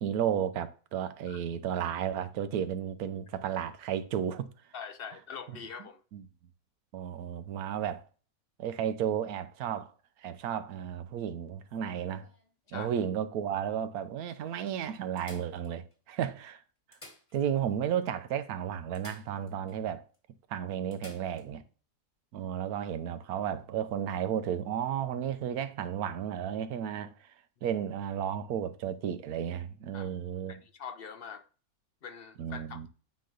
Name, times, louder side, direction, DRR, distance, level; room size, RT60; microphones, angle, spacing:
voice 1, 0.0-4.5 6.1-6.2 6.9-8.0 8.6-9.9 10.2-12.3 12.7-16.6 17.3-20.0 20.5-21.6 22.3-27.3 27.6-30.6 32.4-32.9, right 9 dB, 85° right, 1.2 m, -33 dB
voice 2, 4.7-6.0 12.7-12.9 29.9-30.1 30.5-31.4 32.0-32.9, left 6 dB, 60° left, 0.6 m, -43 dB
sound 1, 11.7-13.3 14.0-14.1 14.3-14.4 15.2-16.2 16.8-17.8 18.0-18.1 18.9-19.8 20.1-20.2 20.9-21.5 23.5-23.6, left 1 dB, 20° left, 1.7 m, -55 dB
9.2 x 3.2 x 3.8 m
omnidirectional pair, 1.5 m